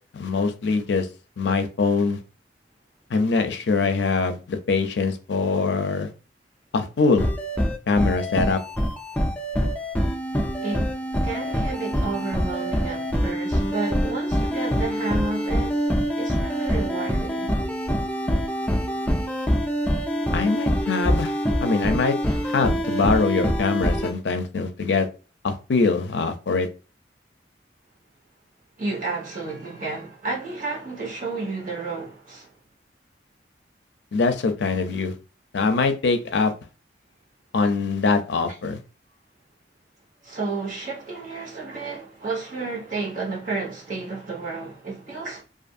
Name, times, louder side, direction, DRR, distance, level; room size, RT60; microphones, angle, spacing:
voice 1, 0.1-1.1 1.4-2.2 3.1-6.1 6.7-7.3 7.9-8.6 20.3-25.1 25.4-26.7 34.1-35.1 35.5-36.5 37.5-38.8, left 4 dB, 70° left, 0.5 m, -23 dB
sound 1, 7.2-24.1, equal, 10° left, 0.4 m, -25 dB
voice 2, 10.6-15.9 16.2-17.5 28.8-32.5 40.2-45.4, right 3 dB, 45° right, 1.2 m, -31 dB
2.5 x 2.5 x 2.4 m
head